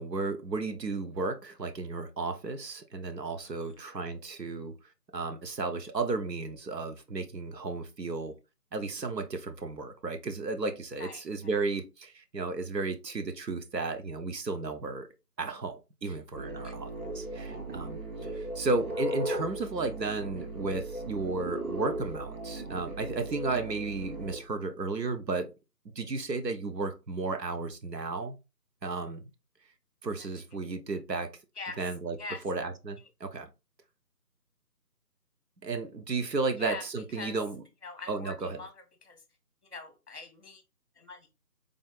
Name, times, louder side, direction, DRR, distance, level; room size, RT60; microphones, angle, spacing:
voice 1, 0.0-4.7 5.1-8.3 8.7-15.1 15.4-16.9 17.1-25.5 26.0-28.4 28.8-29.3 30.0-31.3 31.8-32.2 32.4-33.5 35.6-37.6 38.1-38.6, right 3 dB, 85° right, 0.9 m, -33 dB
voice 2, 3.4-3.8 11.0-11.5 16.0-16.2 16.6-16.8 31.6-31.8 32.2-32.4 36.6-36.8 37.1-37.4 37.8-38.7 39.0-39.2 39.7-40.6 41.0-41.3, left 4 dB, 45° left, 0.9 m, -43 dB
sound 1, 16.3-24.4, right 1 dB, 60° right, 1.0 m, -37 dB
3.7 x 3.5 x 2.4 m
figure-of-eight pair, 165°, 48 cm